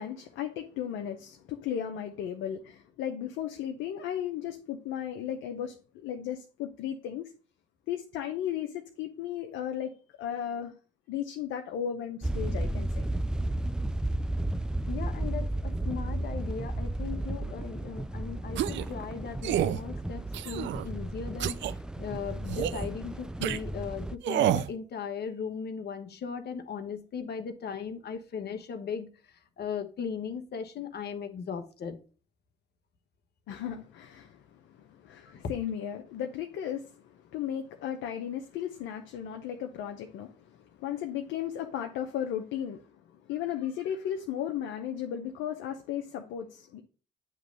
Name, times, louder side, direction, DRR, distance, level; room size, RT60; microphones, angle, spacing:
voice 1, 0.0-7.3 7.9-9.9 10.2-10.7 11.1-13.0 33.5-46.8, left 9 dB, 80° left, 0.7 m, -35 dB
sound 1, 12.2-24.2, right 1 dB, 5° right, 0.4 m, -33 dB
voice 2, 14.9-21.6 22.0-32.0 35.3-35.4, left 6 dB, 55° left, 1.1 m, -38 dB
sound 2, 18.6-18.9 19.4-19.8 20.3-20.9 21.4-21.7 22.5-22.9 23.4-23.6 24.2-24.7, right 11 dB, 70° right, 0.5 m, -28 dB
8.0 x 3.1 x 5.2 m
supercardioid pair, 60°, 20 cm